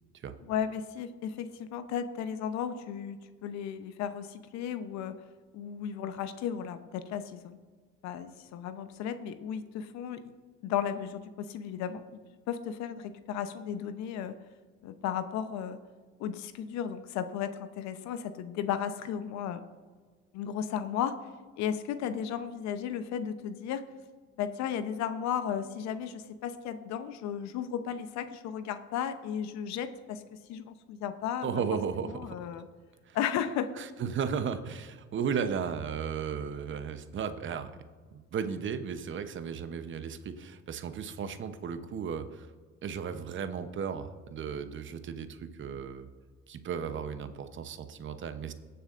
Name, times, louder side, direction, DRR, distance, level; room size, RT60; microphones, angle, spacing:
voice 1, 0.5-5.2 5.5-7.6 8.0-10.2 10.6-12.2 12.5-14.4 14.8-15.8 16.2-19.6 20.3-21.2 21.6-23.8 24.4-31.6 32.1-32.7 33.1-33.7, left 8 dB, 65° left, 11 dB, 0.8 m, -34 dB
voice 2, 31.4-32.4 33.1-33.2 33.8-37.7 38.1-42.5 42.8-46.1 46.5-48.5, right 7 dB, 40° right, 10 dB, 0.8 m, -35 dB
19.0 x 6.8 x 2.5 m, 1.5 s
supercardioid pair, 85°, 29 cm